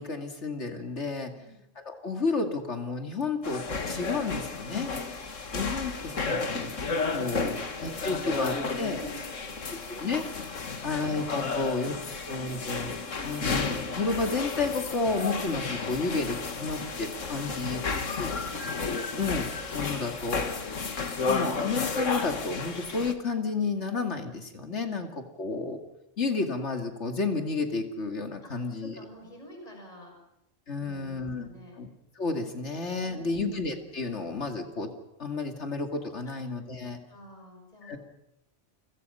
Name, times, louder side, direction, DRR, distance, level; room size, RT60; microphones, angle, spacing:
voice 1, 0.0-1.3 1.8-4.9 5.5-6.8 7.1-7.6 7.8-9.0 9.7-10.2 10.8-13.0 13.2-17.8 18.2-18.4 18.8-20.5 20.9-25.8 26.2-29.0 30.7-31.5 31.8-31.9 32.2-34.9 35.2-37.0 37.8-38.0, left 3 dB, 65° left, 5 dB, 2.8 m, -31 dB
sound 1, 3.4-23.1, left 4 dB, 90° left, 2.1 m, -32 dB
voice 2, 5.1-5.4 5.8-6.0 7.1-10.2 10.6-10.9 16.6-16.8 17.4-18.6 24.9-25.0 28.4-30.2 30.7-31.8 33.0-33.4 36.2-36.4 36.7-37.9, equal, 30° left, 1 dB, 6.6 m, -50 dB
30.0 x 23.5 x 5.7 m, 0.83 s
omnidirectional pair, 1.3 m